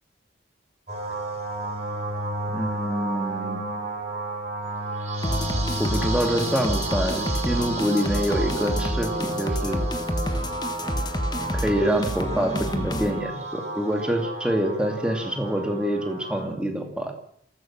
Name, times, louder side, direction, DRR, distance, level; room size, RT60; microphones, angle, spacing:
sound 1, 0.9-16.5, right 2 dB, 35° right, 6.0 m, -32 dB
voice 1, 2.5-3.6 5.8-9.8 11.5-17.1, equal, 5° right, 4 dB, 2.5 m, -26 dB
sound 2, 5.2-13.2, equal, 20° left, 1.4 m, -28 dB
28.0 x 14.5 x 7.5 m, 0.69 s
head